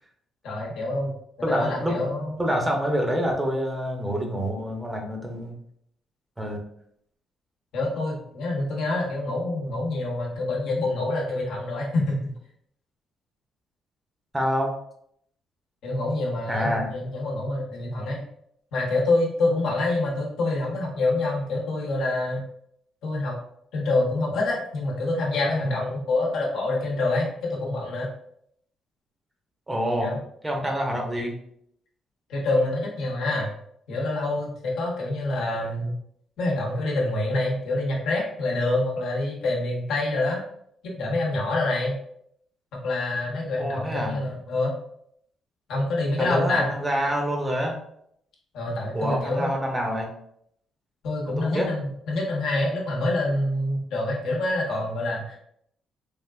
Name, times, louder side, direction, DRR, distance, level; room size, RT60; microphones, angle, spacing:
voice 1, 0.4-1.1 1.5-2.3 7.7-12.4 15.8-18.2 18.7-22.4 23.0-23.4 23.7-28.1 30.0-30.2 32.3-33.5 33.9-36.0 36.4-40.4 41.0-42.0 42.7-44.8 45.7-46.7 48.5-49.5 51.0-55.4, left 2 dB, 80° left, -2 dB, 0.9 m, -26 dB
voice 2, 1.4-2.1 2.4-5.6 6.4-6.6 14.3-14.7 16.5-16.9 29.7-30.1 30.4-31.4 43.6-44.2 46.2-47.8 48.9-50.1 51.4-51.7, equal, 15° right, 1 dB, 0.7 m, -26 dB
3.4 x 2.3 x 2.4 m, 0.70 s
cardioid pair, 90°, 0 cm